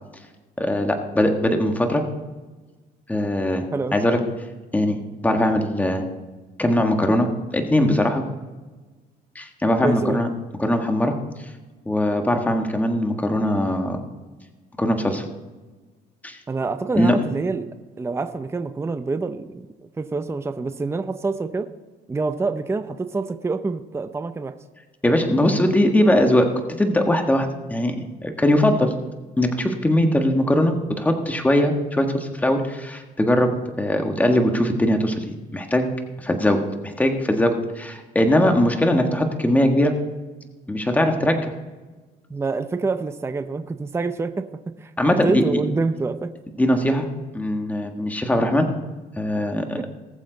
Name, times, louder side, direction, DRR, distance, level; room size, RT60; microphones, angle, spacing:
voice 1, 0.6-2.0 3.1-3.6 3.9-4.2 4.7-6.0 6.6-8.2 9.3-10.3 10.6-11.1 11.8-14.0 14.8-15.2 16.2-16.4 17.0-17.2 25.0-26.5 26.8-28.0 28.2-28.9 29.4-33.5 33.8-35.9 36.2-39.9 40.7-41.5 45.0-45.4 46.6-47.1 47.3-48.7 49.2-49.8, left 1 dB, 10° left, 4 dB, 1.5 m, -20 dB
voice 2, 9.8-10.2 16.5-17.7 18.0-21.7 22.1-24.5 42.3-46.3 49.8-49.9, right 3 dB, 15° right, 9 dB, 0.6 m, -26 dB
19.5 x 7.3 x 4.0 m, 1.3 s
cardioid pair, 110°, 17 cm